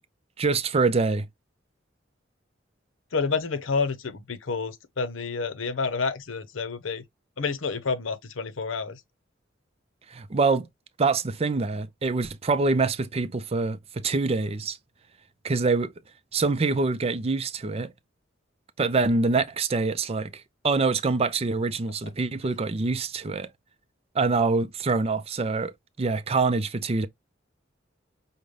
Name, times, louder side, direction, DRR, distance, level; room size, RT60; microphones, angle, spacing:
voice 1, 0.4-1.3 10.1-10.7 11.0-14.8 15.4-15.9 16.3-17.9 18.8-23.5 24.1-25.7 26.0-27.1, right 3 dB, 30° right, 0.5 m, -25 dB
voice 2, 3.1-7.0 7.4-9.0, left 4 dB, 90° left, 0.7 m, -29 dB
5.3 x 2.2 x 3.2 m
head